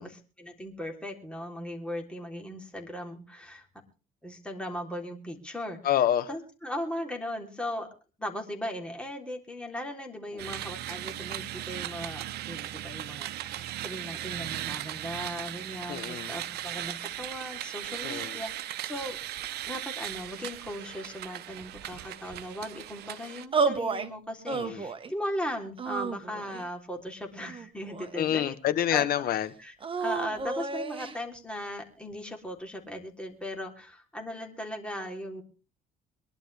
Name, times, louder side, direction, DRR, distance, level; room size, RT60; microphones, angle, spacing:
voice 1, 0.0-3.7 4.2-5.9 6.3-7.9 8.2-18.5 18.8-19.2 19.7-28.5 28.9-29.1 29.6-35.4, left 1 dB, 5° left, 3.5 m, -38 dB
voice 2, 5.8-6.3 10.3-10.4 15.9-16.3 18.0-18.4 24.5-24.8 28.2-29.5, left 11 dB, 60° left, 1.3 m, -27 dB
sound 1, 10.4-23.5, right 13 dB, 75° right, 0.8 m, -38 dB
sound 2, 23.5-24.1 24.5-25.1 25.8-26.7 27.4-28.4 29.8-31.2, right 4 dB, 30° right, 1.4 m, -31 dB
23.0 x 11.5 x 3.5 m
cardioid pair, 110°, 17 cm